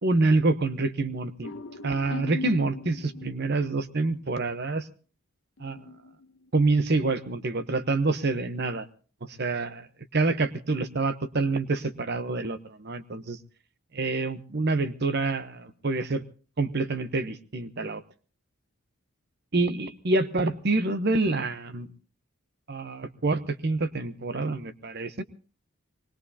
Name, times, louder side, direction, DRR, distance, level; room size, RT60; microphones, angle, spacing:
voice 1, 0.0-1.5 1.8-4.9 5.6-5.8 6.5-8.9 9.2-9.9 10.1-13.4 13.9-16.2 16.6-18.0 19.5-21.9 22.7-25.2, right 3 dB, 50° right, 13 dB, 0.9 m, -27 dB
sound 1, 1.4-4.2 5.6-6.7, left 2 dB, 60° left, 0.8 m, -40 dB
24.5 x 20.0 x 2.8 m, 0.38 s
head